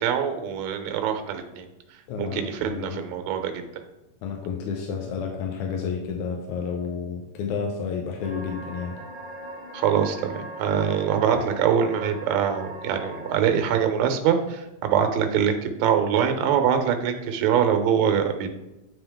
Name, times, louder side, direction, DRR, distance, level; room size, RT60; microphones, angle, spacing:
voice 1, 0.0-1.7 2.2-3.6 9.7-18.5, right 8 dB, 75° right, 6 dB, 2.0 m, -24 dB
voice 2, 2.1-3.0 4.2-9.0, left 6 dB, 80° left, 1 dB, 2.1 m, -31 dB
sound 1, 8.2-13.3, right 1 dB, 15° left, 1.6 m, -39 dB
9.2 x 4.1 x 3.5 m, 0.98 s
omnidirectional pair, 3.4 m